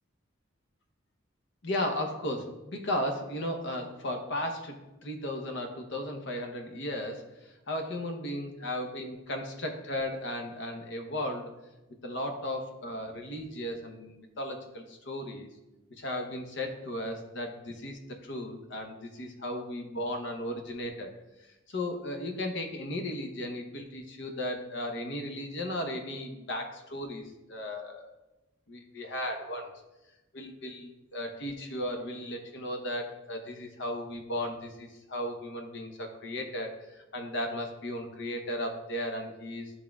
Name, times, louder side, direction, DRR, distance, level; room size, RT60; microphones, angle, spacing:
voice 1, 1.6-11.5 12.0-15.5 15.9-21.1 21.7-28.1 28.7-29.7 30.3-39.7, left 1 dB, 65° left, 4 dB, 0.9 m, -35 dB
11.0 x 3.7 x 2.3 m, 1.0 s
head